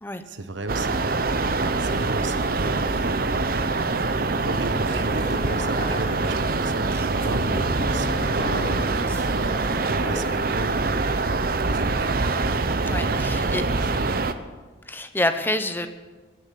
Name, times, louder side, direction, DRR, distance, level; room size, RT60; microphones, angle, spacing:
voice 1, 0.3-1.4 1.8-3.5 4.1-11.3 11.6-12.2 13.0-14.2, right 2 dB, 75° right, 9 dB, 1.1 m, -34 dB
sound 1, 0.7-14.3, right 3 dB, 50° right, 0.8 m, -24 dB
sound 2, 1.9-2.3 2.6-3.0 4.2-4.3 4.6-5.4 6.8-7.3 8.4-8.5 8.9-9.3, right 2 dB, 10° right, 3.3 m, -48 dB
sound 3, 3.8-10.5, left 1 dB, 30° left, 1.3 m, -35 dB
voice 2, 12.9-13.6 14.9-15.9, left 1 dB, 10° left, 9 dB, 0.7 m, -27 dB
20.5 x 7.1 x 8.4 m, 1.3 s
head